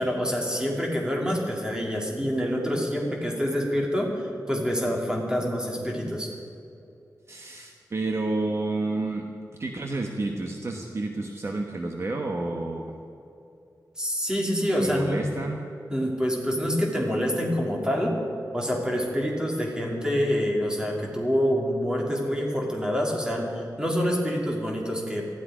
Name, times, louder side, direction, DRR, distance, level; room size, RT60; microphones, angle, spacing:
voice 1, 0.0-6.3 14.0-15.3 15.9-18.2 18.5-25.3, equal, 10° right, -1 dB, 2.9 m, -26 dB
voice 2, 7.3-9.3 9.6-12.9 14.8-15.6, right 2 dB, 45° right, 2 dB, 1.1 m, -30 dB
18.5 x 13.5 x 5.0 m, 2.6 s
wide cardioid pair, 135°, 7 cm